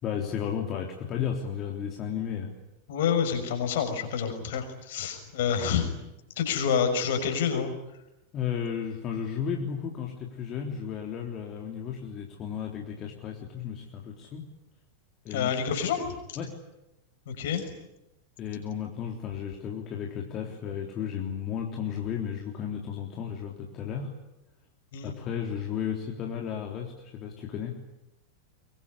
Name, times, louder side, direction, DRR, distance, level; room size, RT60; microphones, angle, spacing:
voice 1, 0.0-2.5 8.3-14.5 15.2-15.5 16.4-16.6 18.4-24.1 25.0-27.8, left 8 dB, 30° left, 1 dB, 3.5 m, -34 dB
voice 2, 2.9-5.9 6.4-7.7 15.3-16.1 17.3-17.6 24.9-25.1, left 7 dB, 55° left, 6 dB, 6.1 m, -28 dB
24.0 x 23.5 x 10.0 m, 0.91 s
figure-of-eight pair, 90°, 0 cm